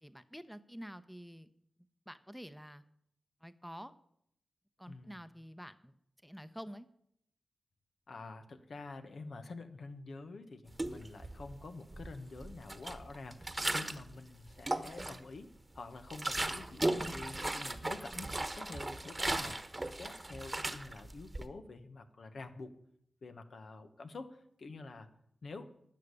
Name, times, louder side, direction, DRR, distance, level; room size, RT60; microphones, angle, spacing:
voice 1, 0.0-1.5 2.1-2.8 3.4-3.9 4.8-5.9 6.2-6.9, equal, ahead, 13 dB, 0.8 m, -48 dB
voice 2, 4.9-5.2 8.1-22.7 23.2-25.1 25.4-25.7, left 3 dB, 70° left, 8 dB, 1.3 m, -48 dB
sound 1, 10.7-11.5 11.9-14.1 14.5-15.4 15.8-21.4, right 2 dB, 25° right, 1.2 m, -37 dB
12.0 x 6.7 x 9.8 m, 0.72 s
cardioid pair, 50°, 0 cm